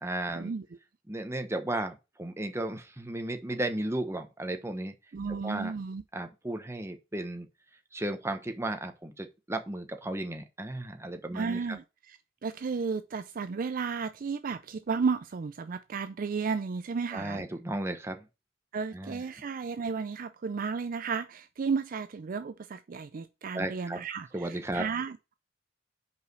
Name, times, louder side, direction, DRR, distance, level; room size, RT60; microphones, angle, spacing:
voice 1, 0.0-0.5 1.1-4.9 5.4-5.7 6.1-7.5 7.9-11.8 17.1-18.3 18.9-19.2 23.5-24.0 24.3-24.8, right 1 dB, 15° right, 1.0 m, -34 dB
voice 2, 5.1-6.0 11.3-12.2 12.4-17.4 18.7-25.3, right 5 dB, 45° right, 0.4 m, -33 dB
5.5 x 4.9 x 6.1 m
head